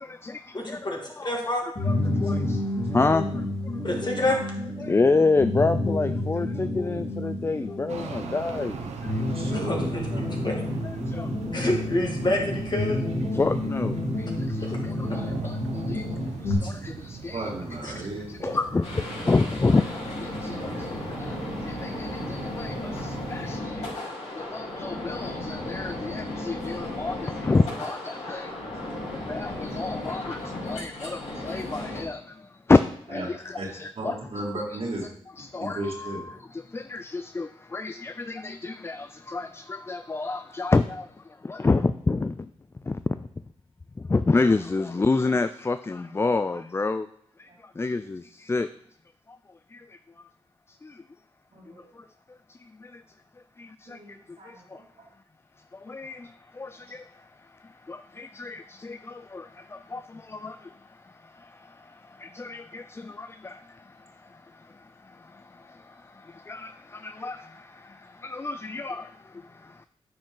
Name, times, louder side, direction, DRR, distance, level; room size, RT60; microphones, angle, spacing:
voice 1, 0.0-3.2 4.8-8.8 9.1-9.6 10.8-11.3 13.3-16.1 16.4-17.5 17.8-23.9 24.4-28.5 29.1-32.8 33.1-34.2 34.7-34.8 35.4-41.1 41.4-42.5 42.8-43.3 44.0-47.1 47.4-47.5 47.8-48.7 49.7-50.0 50.8-51.0 52.0-52.1 52.5-53.0 53.6-54.8 55.7-57.1 57.6-60.7 61.0-69.9, left 3 dB, 20° left, 12 dB, 0.3 m, -29 dB
voice 2, 0.5-1.0 1.2-1.6 3.8-4.4 9.5-10.5 11.5-13.0 16.6-16.7 17.8-17.9 18.4-18.6 20.6-21.1, left 2 dB, 40° left, 0 dB, 2.2 m, -28 dB
sound 1, 1.7-16.5, left 1 dB, 60° left, 3.7 m, -30 dB
sound 2, 7.9-23.6, right 5 dB, 85° right, 0.8 m, -39 dB
voice 3, 9.3-10.2 17.3-18.3 28.1-29.0 33.1-33.2 33.5-33.7 34.0-35.0 35.6-36.2 51.5-51.9 53.9-54.8, right 1 dB, 60° right, -3 dB, 2.2 m, -35 dB
sound 3, 18.8-32.0, left 1 dB, 75° left, 3.4 m, -35 dB
9.2 x 5.2 x 3.8 m, 0.67 s
cardioid pair, 50°, 11 cm